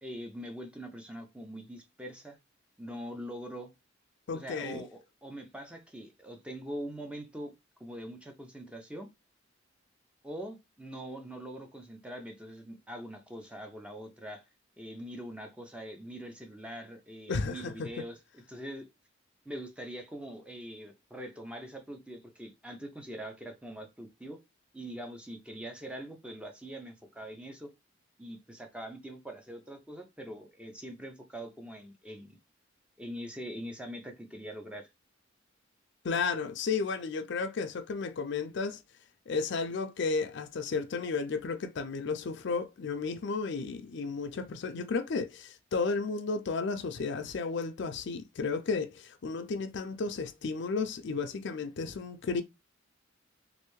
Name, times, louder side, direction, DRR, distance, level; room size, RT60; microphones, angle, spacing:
voice 1, 0.0-2.4 2.8-3.7 4.3-7.5 7.8-9.1 10.2-14.4 14.8-18.9 19.5-24.4 24.7-27.7 28.2-32.4 33.0-34.9, equal, 5° right, 0.5 m, -43 dB
voice 2, 4.3-4.8 17.3-17.9 36.0-38.8 39.3-52.4, left 4 dB, 65° left, 0.4 m, -33 dB
3.2 x 2.6 x 3.1 m
head